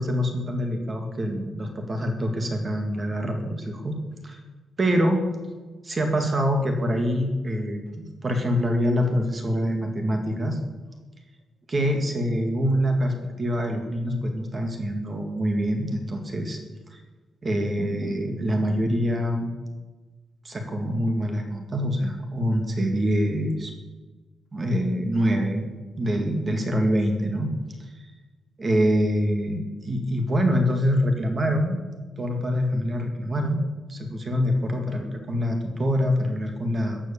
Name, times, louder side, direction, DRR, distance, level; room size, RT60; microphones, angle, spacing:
voice 1, 0.0-4.0 4.2-4.4 4.8-5.2 5.8-7.8 8.2-10.6 11.7-16.6 16.9-17.0 17.4-19.5 20.4-23.7 24.5-25.7 26.0-27.5 28.6-31.8 32.2-33.6 33.9-37.0, equal, 30° right, 4 dB, 2.0 m, -25 dB
15.0 x 9.9 x 7.1 m, 1.2 s
wide cardioid pair, 155°, 0 cm